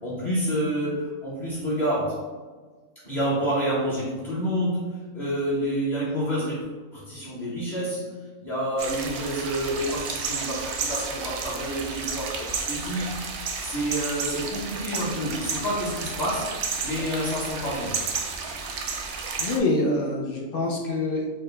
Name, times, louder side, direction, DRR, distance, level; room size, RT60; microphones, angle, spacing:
voice 1, 0.0-2.2 3.0-6.6 6.9-8.1 8.4-13.1 13.6-18.0, equal, 35° left, -8 dB, 0.9 m, -28 dB
sound 1, 8.8-19.6, right 5 dB, 65° right, 0.7 m, -32 dB
voice 2, 19.4-21.3, left 2 dB, 60° left, -1 dB, 0.6 m, -25 dB
4.6 x 2.2 x 3.2 m, 1.4 s
omnidirectional pair, 1.5 m